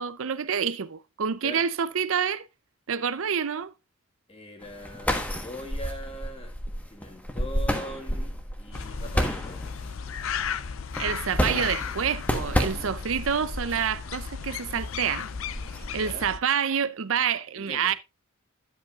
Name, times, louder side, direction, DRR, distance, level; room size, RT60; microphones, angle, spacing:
voice 1, 0.0-2.5 2.9-3.7 11.0-15.3 15.9-17.9, right 7 dB, 65° right, 0.6 m, -27 dB
voice 2, 4.3-6.5 6.9-9.6 15.9-16.3 17.5-18.0, equal, 30° left, 2.2 m, -41 dB
sound 1, 4.6-15.9, equal, 5° left, 1.3 m, -31 dB
sound 2, 8.7-16.4, left 6 dB, 70° left, 0.5 m, -35 dB
11.0 x 8.0 x 2.4 m
head